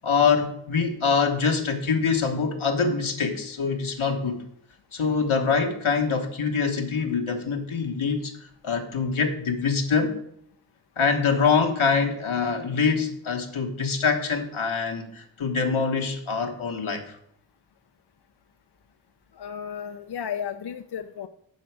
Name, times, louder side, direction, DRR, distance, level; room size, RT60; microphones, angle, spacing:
voice 1, 0.0-4.4 4.9-8.3 8.6-10.2 11.0-17.2, left 5 dB, 75° left, 4 dB, 1.3 m, -24 dB
voice 2, 19.3-21.3, left 8 dB, 55° left, 8 dB, 0.5 m, -33 dB
10.0 x 4.0 x 4.7 m, 0.71 s
cardioid pair, 40°, 49 cm